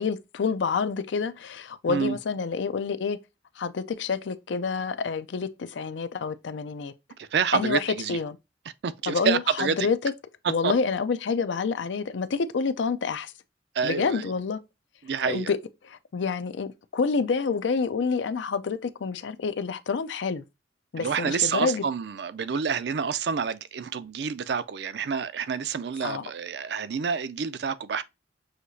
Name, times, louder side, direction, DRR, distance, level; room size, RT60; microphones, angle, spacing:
voice 1, 0.0-3.2 3.6-6.9 7.5-8.4 9.1-10.1 10.5-13.3 13.8-14.6 15.2-15.6 15.8-20.4 20.9-21.8 26.0-26.2, left 5 dB, 90° left, 0.5 m, -28 dB
voice 2, 7.2-8.2 8.8-9.9 10.6-10.7 13.7-14.3 15.0-15.5 21.0-28.0, right 6 dB, 65° right, 0.4 m, -28 dB
6.4 x 2.8 x 2.6 m
head